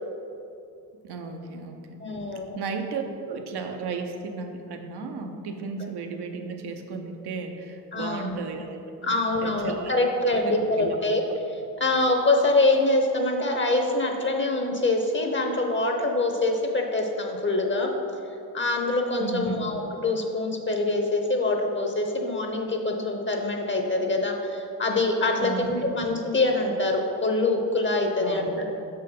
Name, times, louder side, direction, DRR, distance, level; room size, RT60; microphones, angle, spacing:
voice 1, 1.0-2.0 2.6-8.8 9.0-9.9 10.5-11.0 19.2-19.7 25.4-26.0 28.2-28.7, right 4 dB, 70° right, 5 dB, 0.9 m, -34 dB
voice 2, 2.0-2.6 7.9-8.3 9.0-11.2 11.5-17.9 18.5-28.7, left 2 dB, 30° left, 3 dB, 0.9 m, -25 dB
6.5 x 4.5 x 5.4 m, 2.7 s
cardioid pair, 80°, 41 cm